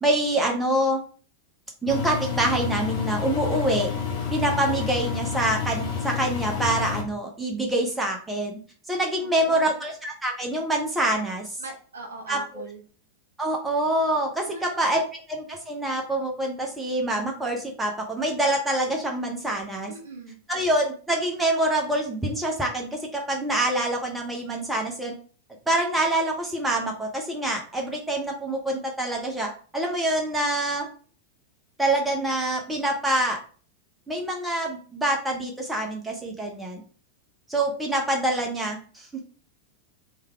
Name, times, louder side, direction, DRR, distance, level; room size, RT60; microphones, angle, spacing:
voice 1, 0.0-1.0 1.8-3.9 4.3-8.6 8.9-11.4 12.3-12.6 13.4-19.9 20.5-25.1 25.7-30.9 31.8-33.4 34.1-36.8 37.5-39.2, right 1 dB, 10° right, 1 dB, 0.8 m, -26 dB
Engine, 1.9-7.0, left 7 dB, 40° left, 1.3 m, -29 dB
voice 2, 9.2-9.8 11.6-12.8 14.4-14.9 19.9-20.3, right 3 dB, 65° right, 1 dB, 1.5 m, -40 dB
3.4 x 3.3 x 3.3 m, 0.41 s
figure-of-eight pair, 90°, 0 cm